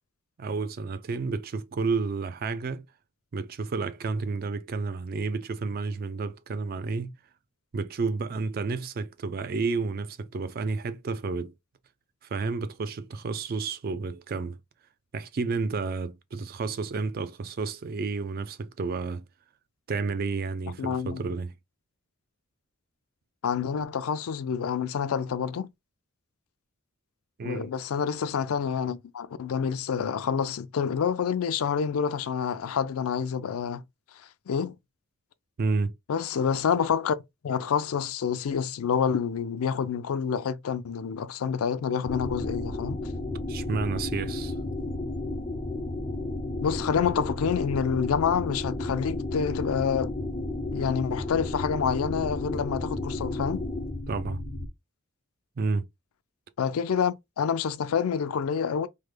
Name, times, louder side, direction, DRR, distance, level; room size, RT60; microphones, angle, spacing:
voice 1, 0.4-2.9 3.3-7.2 7.7-11.5 12.3-14.6 15.1-19.2 19.9-21.5 27.4-27.7 35.6-35.9 43.5-44.5 54.1-54.4 55.6-55.9, right 4 dB, 45° right, 0.3 m, -31 dB
voice 2, 20.8-21.2 23.4-25.7 27.4-33.8 34.5-34.7 36.1-37.2 37.4-43.0 46.6-50.1 50.7-53.6 56.6-58.9, left 7 dB, 90° left, 0.4 m, -28 dB
sound 1, 42.0-54.7, left 2 dB, 25° left, 0.4 m, -32 dB
3.2 x 2.1 x 3.2 m
head